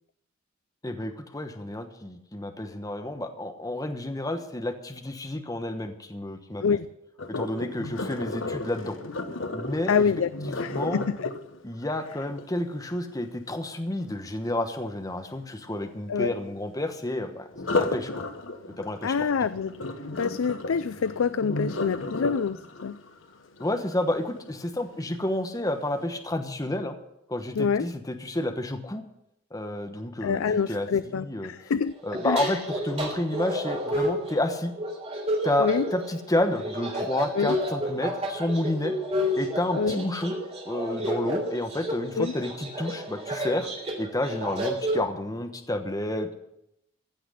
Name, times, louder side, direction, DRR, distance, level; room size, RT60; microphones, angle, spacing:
voice 1, 0.8-6.8 7.3-9.0 9.5-10.1 10.4-11.0 11.6-18.2 18.8-19.3 23.6-27.0 27.3-29.0 29.5-31.5 32.0-34.7 35.4-38.9 39.3-40.4 40.6-43.7 44.0-46.3, left 1 dB, 20° left, 6 dB, 1.1 m, -30 dB
Sink (filling or washing), 7.2-13.1 17.5-24.6 25.1-25.4 25.9-26.0, left 2 dB, 70° left, 1.1 m, -34 dB
voice 2, 9.9-11.3 16.1-16.3 19.0-19.7 20.2-23.0 27.6-27.9 30.2-31.9 32.2-32.5 35.6-35.9 37.3-37.5 39.8-40.0 42.2-42.3, left 6 dB, 85° left, 14 dB, 0.4 m, -26 dB
sound 1, 31.9-45.0, equal, 30° right, 3.5 m, -31 dB
15.5 x 6.0 x 9.9 m, 0.81 s
head